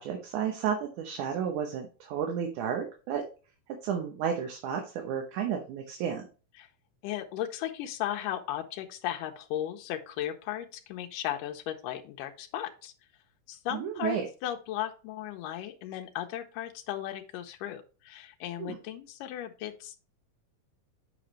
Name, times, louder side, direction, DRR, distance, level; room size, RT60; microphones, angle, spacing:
voice 1, 0.0-3.2 3.8-6.2 13.7-14.3 18.6-18.8, right 8 dB, 70° right, 3 dB, 2.3 m, -32 dB
voice 2, 7.0-12.9 13.5-20.0, left 12 dB, 85° left, 4 dB, 2.3 m, -36 dB
8.7 x 5.1 x 3.1 m, 0.35 s
omnidirectional pair, 3.8 m